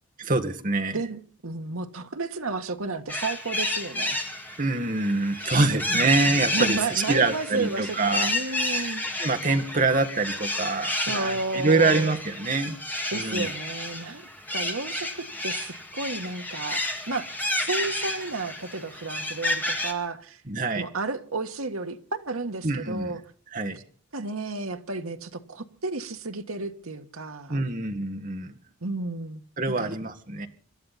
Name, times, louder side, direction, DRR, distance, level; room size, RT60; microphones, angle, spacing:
voice 1, 0.2-1.0 4.6-8.3 8.6-8.9 9.2-12.8 13.1-13.5 20.5-20.8 22.6-23.1 23.5-23.8 27.5-28.6 29.6-30.5, right 3 dB, 35° right, 1.6 m, -25 dB
voice 2, 0.9-4.2 5.7-6.1 6.5-9.6 11.0-12.1 13.1-20.4 20.7-23.2 24.1-27.6 28.8-29.4 29.7-29.9, right 3 dB, 75° right, 1.5 m, -32 dB
sound 1, 3.1-19.9, left 1 dB, 10° left, 2.1 m, -31 dB
26.5 x 12.5 x 4.2 m
head